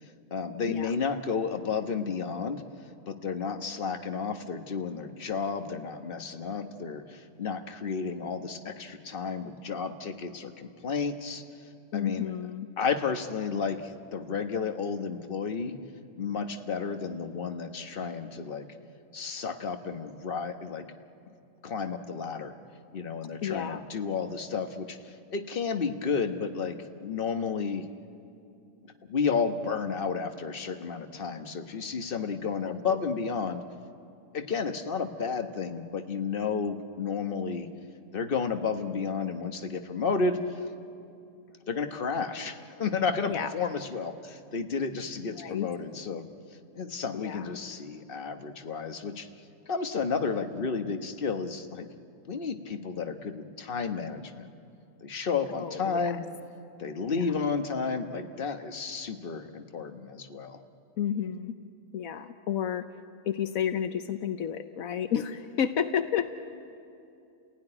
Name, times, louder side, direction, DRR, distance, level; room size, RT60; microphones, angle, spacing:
voice 1, 0.3-2.6 3.1-11.4 11.9-12.3 12.8-15.8 16.2-18.7 19.1-20.9 21.6-22.6 22.9-27.9 29.0-33.6 34.3-37.7 38.1-40.7 41.7-46.3 46.7-49.3 49.7-51.9 52.3-54.5 55.0-56.2 56.8-60.6, left 5 dB, 40° left, 6 dB, 1.3 m, -32 dB
voice 2, 11.9-12.7 23.4-23.8 32.9-33.0 43.3-43.5 45.3-45.7 47.1-47.5 55.5-56.1 57.1-57.2 61.0-61.5 61.9-62.8 63.3-66.3, left 8 dB, 80° left, 9 dB, 1.2 m, -31 dB
29.5 x 16.5 x 9.9 m, 2.6 s
omnidirectional pair, 1.4 m